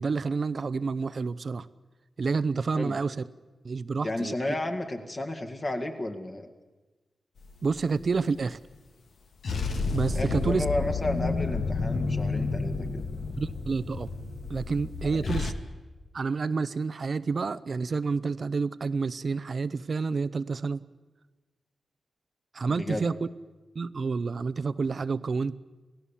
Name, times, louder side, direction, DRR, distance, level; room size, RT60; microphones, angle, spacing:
voice 1, 0.0-1.7 2.2-3.2 3.6-4.3 7.6-8.6 9.9-10.6 13.4-14.1 14.5-15.5 16.1-20.8 22.5-23.1 23.7-25.6, right 4 dB, 45° right, 14 dB, 0.7 m, -29 dB
voice 2, 4.0-6.5 10.1-13.0 15.0-15.4 22.6-23.1, left 1 dB, 30° left, 5 dB, 2.0 m, -33 dB
sound 1, 7.4-8.1 9.4-15.5, left 4 dB, 70° left, 1.6 m, -30 dB
27.0 x 17.0 x 7.3 m, 1.2 s
wide cardioid pair, 130°, 0 cm